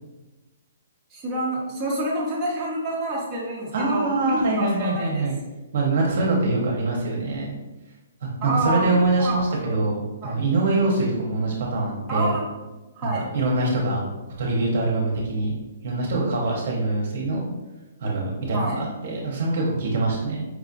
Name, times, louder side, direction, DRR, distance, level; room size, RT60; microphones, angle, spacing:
voice 1, 1.1-5.3 8.4-8.9 9.2-9.7 10.2-10.4 12.1-12.5 13.0-13.3 18.5-18.8, right 1 dB, 10° right, -8 dB, 0.6 m, -28 dB
voice 2, 3.7-5.4 5.7-7.5 8.4-12.3 13.3-14.0 14.4-15.5 15.8-17.5 18.0-20.5, right 2 dB, 50° right, -2 dB, 0.7 m, -24 dB
4.7 x 2.4 x 2.5 m, 1.1 s
hypercardioid pair, 170°, 0 cm